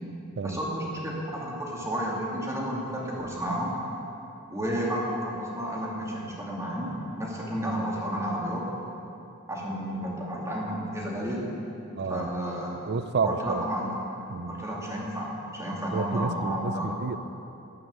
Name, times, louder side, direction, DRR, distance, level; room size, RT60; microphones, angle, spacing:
voice 1, 0.4-3.7 4.5-8.6 9.5-11.4 12.1-12.8 13.2-13.9 14.5-16.9, equal, 15° right, -4 dB, 2.4 m, -31 dB
voice 2, 12.0-12.3 12.9-13.7 14.3-14.7 15.9-17.2, right 4 dB, 50° right, 12 dB, 0.5 m, -30 dB
11.0 x 8.6 x 8.0 m, 2.9 s
head